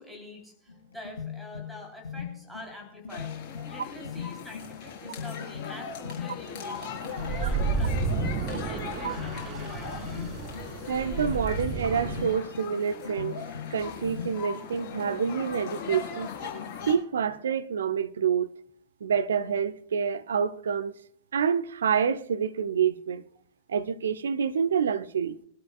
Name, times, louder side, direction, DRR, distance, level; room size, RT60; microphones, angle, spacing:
voice 1, 0.0-3.4 3.7-7.0 7.3-8.1 8.4-10.3, left 1 dB, ahead, 3.4 m, -46 dB
sound 1, 0.7-15.6, left 7 dB, 70° left, 4.2 m, -41 dB
sound 2, 3.1-17.0, left 6 dB, 45° left, 4.2 m, -39 dB
sound 3, 7.1-12.3, right 5 dB, 40° right, 2.1 m, -32 dB
voice 2, 10.9-13.4 13.7-16.3 16.9-18.5 19.0-20.9 21.3-23.2 23.7-25.4, right 7 dB, 65° right, 0.7 m, -27 dB
22.5 x 12.5 x 2.3 m
figure-of-eight pair, 90°, 0 cm